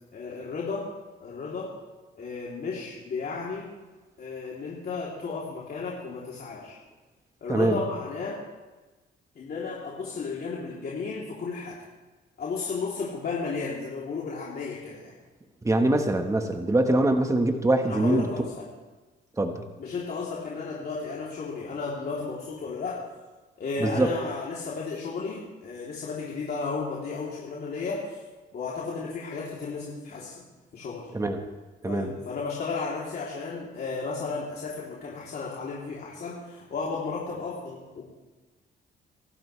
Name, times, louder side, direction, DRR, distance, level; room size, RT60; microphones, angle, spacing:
voice 1, 0.1-0.9 1.2-1.7 2.1-3.7 4.2-6.8 7.4-8.4 9.3-11.8 12.4-15.1 17.9-18.7 19.8-23.0 23.6-28.2 28.5-30.3 30.7-31.1 31.9-38.0, left 4 dB, 50° left, -5 dB, 3.3 m, -33 dB
voice 2, 15.6-18.3 19.4-19.6 23.8-24.1 31.1-31.4 31.8-32.1, right 2 dB, 15° right, 5 dB, 1.4 m, -23 dB
25.0 x 12.0 x 3.3 m, 1.2 s
cardioid pair, 90°, 20 cm